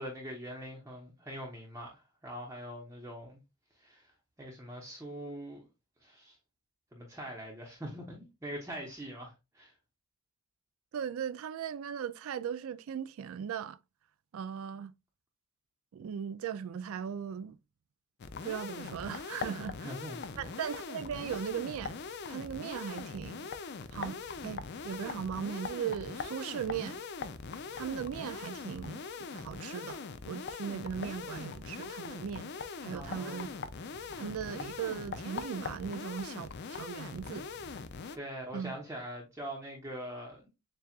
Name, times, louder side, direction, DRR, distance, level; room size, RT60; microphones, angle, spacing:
voice 1, 0.0-3.4 3.8-4.1 4.4-5.7 6.0-6.4 6.9-9.7 19.8-20.5 32.9-33.5 38.1-40.4, equal, 15° right, 0.9 m, -43 dB
voice 2, 10.9-13.8 14.3-14.9 15.9-17.6 18.4-19.9 20.4-22.0 22.3-23.5 23.9-27.0 27.7-29.0 29.3-30.0 30.3-32.5 32.8-33.5 34.2-37.5 38.5-38.7, right 8 dB, 70° right, 0.3 m, -38 dB
sound 1, 18.2-38.2, left 5 dB, 50° left, 0.4 m, -41 dB
7.1 x 2.4 x 2.4 m
head